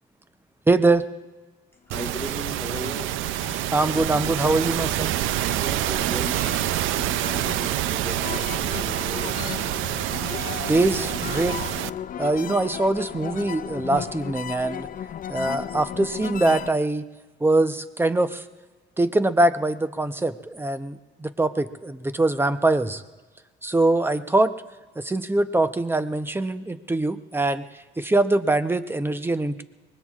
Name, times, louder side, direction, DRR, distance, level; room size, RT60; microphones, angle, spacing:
voice 1, 0.7-1.0 3.7-5.2 10.7-11.6 12.2-14.9 15.3-17.0 17.4-18.4 19.0-23.0 23.6-24.5 25.0-27.6 28.0-29.6, right 2 dB, 10° right, 10 dB, 0.7 m, -23 dB
voice 2, 1.9-3.2 5.6-9.4, left 1 dB, 10° left, 1 dB, 1.5 m, -37 dB
sound 1, 1.9-11.9, right 14 dB, 85° right, 0.4 m, -27 dB
sound 2, 2.3-16.7, left 9 dB, 45° left, 0.4 m, -36 dB
24.0 x 21.0 x 2.5 m, 1.3 s
cardioid pair, 90°, 20 cm